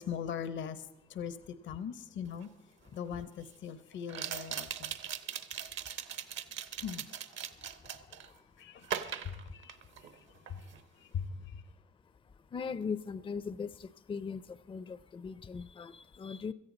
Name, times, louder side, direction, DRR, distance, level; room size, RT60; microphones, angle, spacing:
voice 1, 0.0-1.4 1.6-2.5 2.9-5.0 6.8-7.1 8.6-10.7 11.0-11.6, left 7 dB, 70° left, 0.9 m, -41 dB
sound 1, 2.4-2.5 4.1-8.3 8.8-10.2 10.5-10.8, right 8 dB, 70° right, 1.0 m, -40 dB
voice 2, 5.0-6.8 7.4-11.5 12.0-16.5, left 5 dB, 25° left, 0.5 m, -43 dB
17.0 x 14.0 x 4.1 m
cardioid pair, 90°, 20 cm